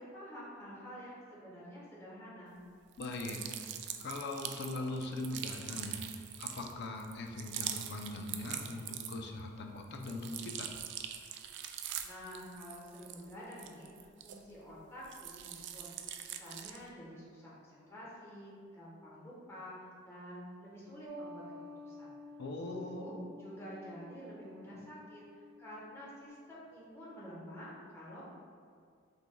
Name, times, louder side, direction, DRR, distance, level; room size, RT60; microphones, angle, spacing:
voice 1, 0.0-2.5 12.0-15.9 16.2-19.7 20.0-22.1 22.6-23.1 23.4-28.2, equal, 15° left, -7 dB, 1.1 m, -49 dB
sound 1, 2.9-9.4 9.8-14.7 15.0-16.9, right 10 dB, 60° right, 0.3 m, -43 dB
voice 2, 3.0-3.4 4.0-6.0 6.4-10.7 22.4-23.1, left 2 dB, 60° left, 2 dB, 0.5 m, -40 dB
sound 2, 21.0-26.3, left 1 dB, 20° right, 0.6 m, -51 dB
6.0 x 3.4 x 2.2 m, 2.1 s
head